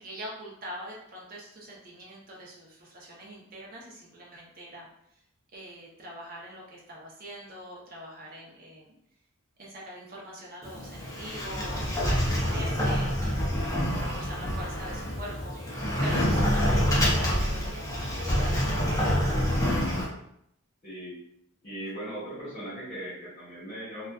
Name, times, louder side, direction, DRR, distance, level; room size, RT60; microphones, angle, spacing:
voice 1, 0.0-4.9 5.5-8.9 9.6-13.5 13.8-19.6, equal, 40° right, -3 dB, 0.6 m, -43 dB
Sliding door, 10.6-20.0, equal, 15° left, 0.4 m, -27 dB
voice 2, 20.8-21.2 21.6-24.1, right 1 dB, 30° left, -10 dB, 1.0 m, -38 dB
2.4 x 2.3 x 2.3 m, 0.75 s
head